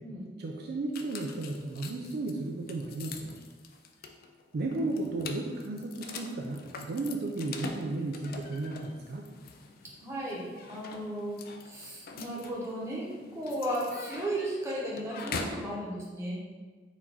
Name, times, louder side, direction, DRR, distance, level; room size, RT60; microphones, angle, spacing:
voice 1, 0.4-3.4 4.5-9.3, right 2 dB, 60° right, 1 dB, 0.4 m, -34 dB
sound 1, 0.9-15.7, left 4 dB, 55° left, 0.4 m, -44 dB
voice 2, 10.0-11.4 11.6-13.0 13.3-16.4, right 1 dB, 15° right, -5 dB, 0.9 m, -35 dB
4.5 x 2.5 x 4.1 m, 1.4 s
head